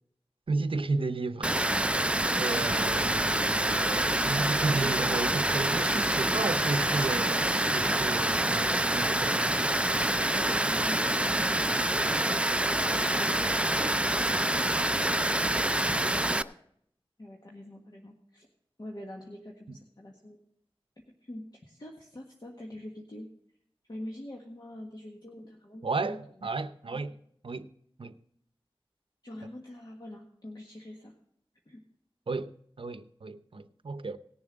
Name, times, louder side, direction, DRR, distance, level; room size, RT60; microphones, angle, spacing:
voice 1, 0.5-1.5 2.4-9.4 19.7-19.8 25.8-27.1 27.4-27.7 28.0-28.2 32.3-32.5 32.8-34.2, right 3 dB, 65° right, 0.6 m, -33 dB
Water, 1.4-16.4, right 1 dB, 10° right, 0.4 m, -26 dB
voice 2, 10.2-12.5 12.8-13.2 13.8-15.3 16.4-16.5 17.2-18.5 18.8-20.4 21.2-23.3 23.9-26.2 26.9-27.1 29.2-31.2 31.7-31.8, left 1 dB, 45° left, 1.5 m, -44 dB
18.5 x 7.2 x 3.9 m
wide cardioid pair, 65°, 10 cm